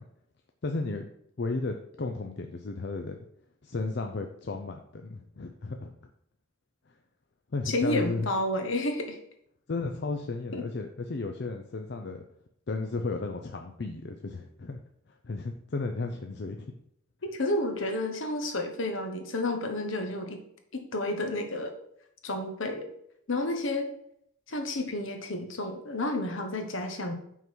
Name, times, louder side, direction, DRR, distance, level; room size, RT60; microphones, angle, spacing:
voice 1, 0.6-1.1 1.4-3.2 3.6-5.9 7.5-8.3 9.7-12.2 12.7-14.8 15.2-16.7, left 3 dB, 55° left, 4 dB, 0.5 m, -34 dB
voice 2, 7.6-9.2 10.5-10.6 17.2-20.4 20.7-21.7 22.2-22.9 23.3-23.9 24.5-27.1, left 1 dB, 70° left, 5 dB, 1.1 m, -30 dB
5.6 x 4.6 x 6.1 m, 0.74 s
head